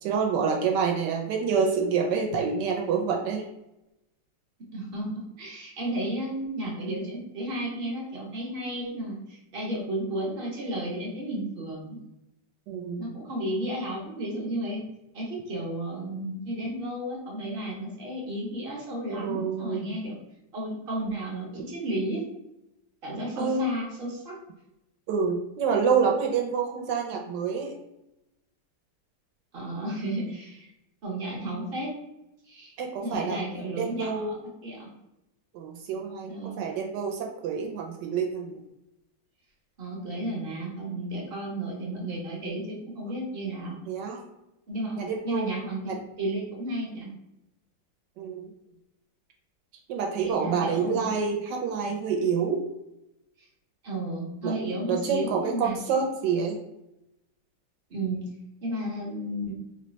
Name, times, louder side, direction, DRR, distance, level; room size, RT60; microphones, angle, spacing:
voice 1, 0.0-3.4 12.7-13.0 19.2-19.9 23.4-23.7 25.1-27.7 32.8-33.4 33.8-34.3 35.5-38.6 43.8-44.2 45.0-45.5 45.9-46.0 48.2-48.5 49.9-52.6 54.4-54.5 54.9-56.6, right 6 dB, 75° right, 1 dB, 1.1 m, -27 dB
voice 2, 4.7-12.0 13.0-14.8 15.1-20.2 20.5-22.2 23.0-24.4 29.5-30.7 31.0-31.9 32.5-32.7 33.0-34.9 36.3-36.6 39.8-43.8 44.7-45.8 46.2-47.1 50.2-51.1 53.8-56.0 57.9-58.2 58.6-59.5, right 1 dB, 50° right, -3 dB, 0.7 m, -33 dB
3.1 x 2.2 x 3.9 m, 0.88 s
omnidirectional pair, 2.0 m